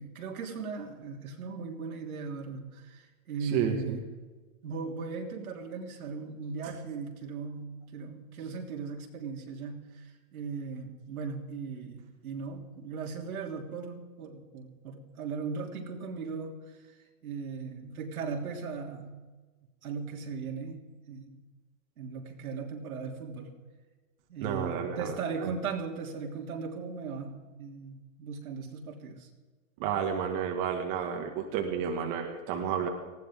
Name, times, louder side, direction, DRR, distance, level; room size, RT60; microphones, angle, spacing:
voice 1, 0.0-4.1 4.6-17.0 17.2-19.1 19.8-21.4 22.0-23.5 24.3-29.3, right 5 dB, 80° right, 1 dB, 3.4 m, -38 dB
voice 2, 3.4-4.0 24.4-25.5 29.8-32.9, right 7 dB, 35° right, 2 dB, 1.9 m, -31 dB
19.5 x 16.0 x 3.7 m, 1.3 s
hypercardioid pair, 155°, 42 cm